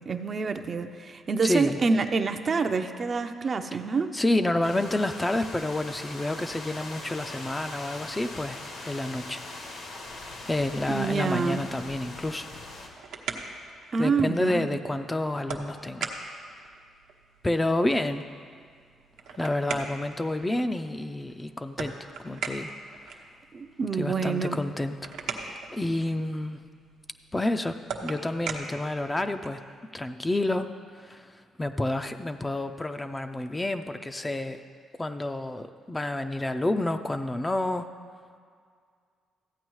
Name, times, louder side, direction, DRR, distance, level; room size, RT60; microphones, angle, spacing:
voice 1, 0.1-4.1 10.9-11.6 13.9-14.7 23.5-24.6, right 4 dB, 40° right, 7 dB, 0.5 m, -27 dB
voice 2, 1.4-1.8 4.1-9.7 10.4-12.5 14.0-16.1 17.4-18.2 19.3-21.9 22.2-22.7 24.0-26.6 27.3-27.7 28.0-29.6 29.9-30.7 31.0-34.6 35.0-37.9, left 1 dB, 15° left, 8 dB, 0.4 m, -29 dB
sound 1, 4.6-12.9, left 2 dB, 80° left, 1.5 m, -41 dB
sound 2, 12.9-29.7, right 5 dB, 80° right, 0.8 m, -41 dB
14.5 x 8.8 x 3.1 m, 2.1 s
cardioid pair, 90°, 0 cm